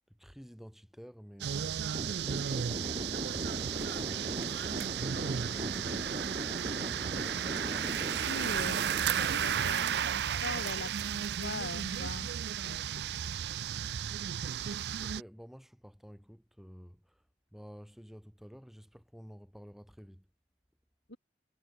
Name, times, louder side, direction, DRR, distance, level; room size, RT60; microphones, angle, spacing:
voice 1, 0.2-3.3 15.0-17.0 17.5-20.2, equal, ahead, 3.4 m, -52 dB
sound 1, 1.4-15.2, right 9 dB, 70° right, 0.4 m, -34 dB
sound 2, 1.9-10.2, right 1 dB, 35° right, 3.5 m, -39 dB
voice 2, 8.2-12.3 12.7-12.8 21.1-21.2, left 2 dB, 80° left, 3.8 m, -42 dB
head